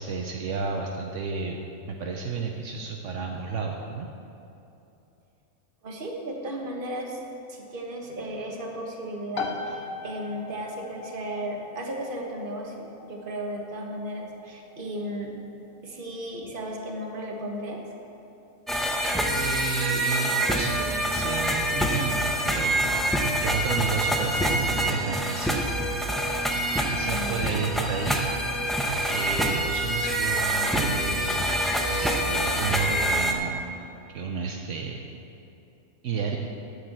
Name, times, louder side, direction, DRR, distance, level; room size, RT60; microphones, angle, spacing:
voice 1, 0.0-1.6 1.9-4.1 19.3-23.1 23.4-25.6 26.9-28.3 29.1-31.5 31.9-33.6 34.1-35.0 36.0-36.4, right 5 dB, 70° right, 2 dB, 1.0 m, -32 dB
voice 2, 5.8-7.2 7.5-15.4 15.8-17.8 27.0-27.7, right 1 dB, 45° right, 0 dB, 1.4 m, -35 dB
sound 1, 9.3-23.8, left 4 dB, 55° left, 0.9 m, -43 dB
sound 2, 18.7-33.3, right 1 dB, ahead, 0.5 m, -26 dB
9.6 x 6.9 x 7.4 m, 2.8 s
omnidirectional pair, 1.3 m